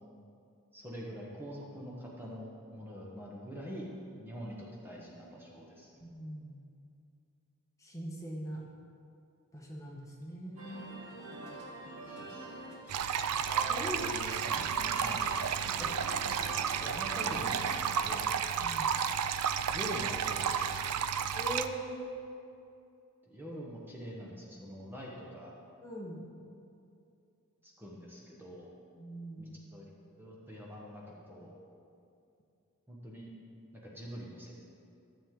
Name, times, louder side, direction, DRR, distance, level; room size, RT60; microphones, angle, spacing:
voice 1, 0.7-3.9 4.2-5.9 12.1-13.2 13.9-14.4 15.0-15.2 15.8-15.9 16.4-16.5 16.8-18.3 19.7-20.8 23.2-25.5 27.6-28.7 29.4-31.6 32.9-33.3 33.7-34.6, equal, 10° right, -4 dB, 1.1 m, -45 dB
voice 2, 6.0-6.6 7.8-8.6 9.5-10.9 13.6-14.0 14.6-14.7 18.6-18.9 21.3-22.1 25.8-26.2 28.9-29.5, equal, 15° left, -2 dB, 1.2 m, -41 dB
sound 1, 10.6-17.8, right 2 dB, 65° right, 2.6 m, -45 dB
sound 2, 12.9-21.7, right 7 dB, 85° right, 0.4 m, -32 dB
13.0 x 7.3 x 3.7 m, 2.5 s
head